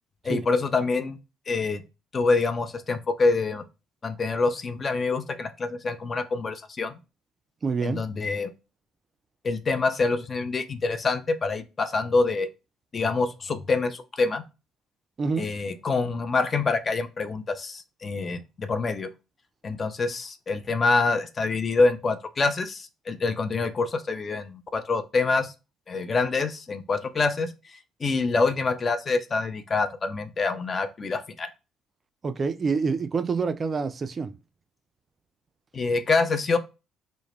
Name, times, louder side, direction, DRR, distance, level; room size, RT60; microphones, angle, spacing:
voice 1, 0.2-1.2 1.5-1.8 2.1-3.6 4.0-6.9 7.8-8.5 9.4-12.5 12.9-14.4 15.4-19.1 19.6-25.5 25.9-27.5 28.0-31.5 35.7-36.6, left 3 dB, 35° left, 0.4 m, -26 dB
voice 2, 7.6-8.0 15.2-15.5 32.2-34.3, right 5 dB, 35° right, 0.3 m, -27 dB
2.1 x 2.0 x 3.2 m
figure-of-eight pair, 50°, 0 cm